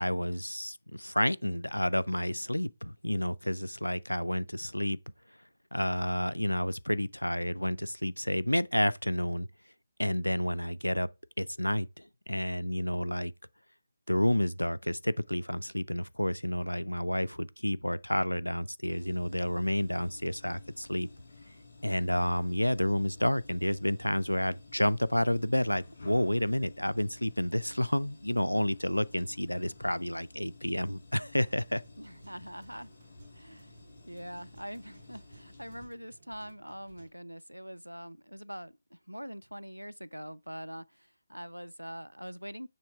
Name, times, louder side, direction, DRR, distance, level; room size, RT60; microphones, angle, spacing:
voice 1, 0.0-5.0 5.7-9.5 10.0-11.1 11.4-13.3 14.1-21.1 21.8-31.8, equal, 90° left, 0.3 m, -30 dB
sound 1, 18.9-35.8, left 3 dB, 50° left, 2.9 m, -53 dB
sound 2, 30.9-37.1, right 3 dB, 45° right, 1.2 m, -59 dB
voice 2, 32.0-32.9 33.3-33.8 34.1-42.7, equal, 90° right, 0.3 m, -44 dB
6.8 x 3.1 x 4.5 m
figure-of-eight pair, 150°, 0 cm